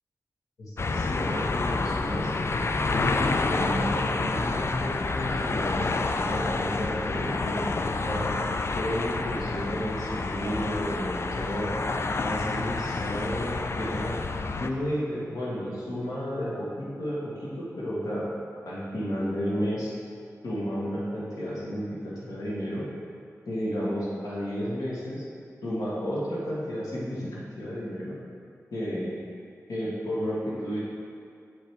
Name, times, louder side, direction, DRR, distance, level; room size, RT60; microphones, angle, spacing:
voice 1, 0.6-2.3 2.9-7.6 8.0-8.3 8.7-11.7 12.2-14.2 14.6-18.3 18.6-19.9 20.4-22.8 23.5-25.2 25.6-28.2 28.7-29.1 29.7-30.8, equal, 90° left, -7 dB, 1.5 m, -32 dB
sound 1, 0.8-14.7, left 3 dB, 45° left, 0.4 m, -29 dB
8.0 x 4.7 x 3.4 m, 2.4 s
cardioid pair, 50°, 6 cm